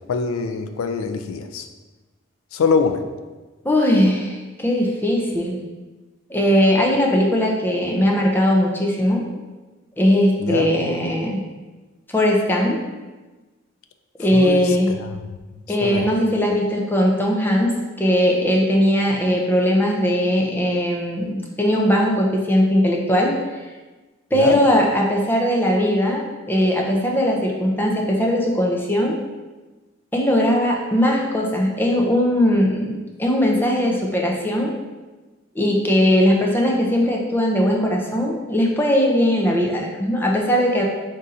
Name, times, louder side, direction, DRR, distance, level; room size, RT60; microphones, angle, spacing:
voice 1, 0.1-1.7 2.5-3.0 10.4-10.7 14.3-15.2 15.8-16.1 24.3-24.6, left 5 dB, 85° left, 7 dB, 0.4 m, -23 dB
voice 2, 3.6-5.6 6.3-9.2 10.0-11.4 12.1-12.8 14.2-14.9 15.7-23.3 24.3-29.2 30.1-34.7 35.6-40.8, equal, 10° left, -1 dB, 0.4 m, -19 dB
3.7 x 2.6 x 4.1 m, 1.2 s
head